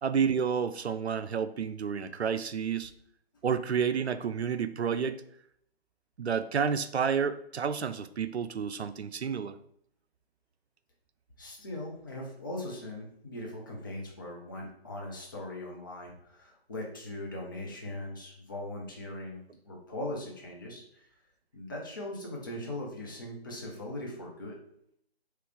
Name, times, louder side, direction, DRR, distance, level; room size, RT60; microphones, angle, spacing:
voice 1, 0.0-3.0 3.4-5.2 6.2-9.6, right 7 dB, 85° right, 12 dB, 0.5 m, -30 dB
voice 2, 11.4-19.4 19.6-21.1 21.5-24.6, left 1 dB, 20° left, -2 dB, 0.7 m, -40 dB
4.8 x 3.2 x 3.4 m, 0.70 s
figure-of-eight pair, 150°, 32 cm